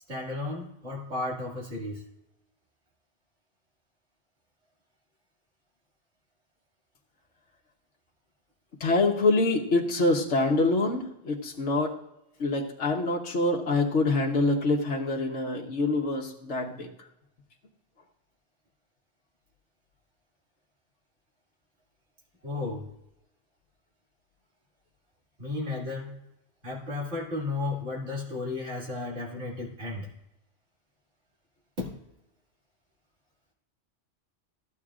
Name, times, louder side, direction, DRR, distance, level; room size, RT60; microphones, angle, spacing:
voice 1, 0.1-2.0 22.4-22.9 25.4-26.1 26.6-30.1 31.8-31.9, left 3 dB, 75° right, -3 dB, 2.6 m, -33 dB
voice 2, 8.8-11.9 12.4-16.9, left 2 dB, 75° left, 0 dB, 1.4 m, -25 dB
15.0 x 8.6 x 2.5 m, 0.86 s
omnidirectional pair, 1.2 m